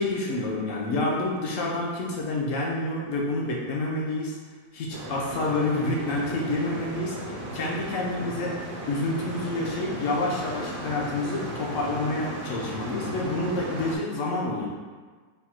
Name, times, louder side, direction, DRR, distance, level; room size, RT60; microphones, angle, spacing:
voice 1, 0.0-4.4 4.7-8.6 8.9-14.7, left 2 dB, 60° left, -3 dB, 0.9 m, -28 dB
sound 1, 4.9-14.0, right 1 dB, 55° right, 0.9 m, -36 dB
3.6 x 2.3 x 4.2 m, 1.5 s
omnidirectional pair, 1.9 m